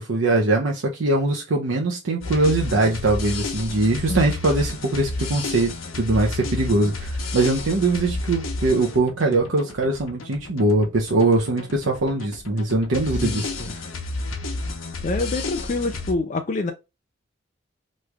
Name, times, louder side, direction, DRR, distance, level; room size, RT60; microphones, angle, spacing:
voice 1, 0.0-13.5, right 2 dB, 75° right, 0.7 m, -22 dB
sound 1, 2.2-16.1, left 2 dB, 85° left, 0.8 m, -31 dB
voice 2, 13.2-13.7 15.0-16.7, left 3 dB, 40° left, 0.3 m, -26 dB
3.1 x 2.4 x 3.2 m
head